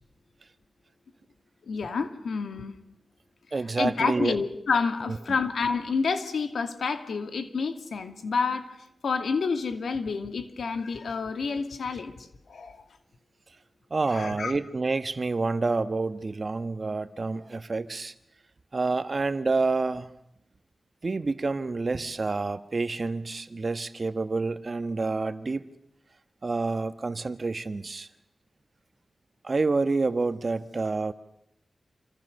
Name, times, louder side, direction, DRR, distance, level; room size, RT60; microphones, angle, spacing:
voice 1, 1.6-2.8 3.8-8.7 9.0-12.8 14.1-14.5, left 5 dB, 85° left, 2.4 m, -29 dB
voice 2, 3.5-4.4 13.9-18.1 18.7-20.1 21.0-25.6 26.4-28.1 29.4-31.1, right 3 dB, 45° right, 1.5 m, -28 dB
28.0 x 26.0 x 6.7 m
wide cardioid pair, 80°, 0 cm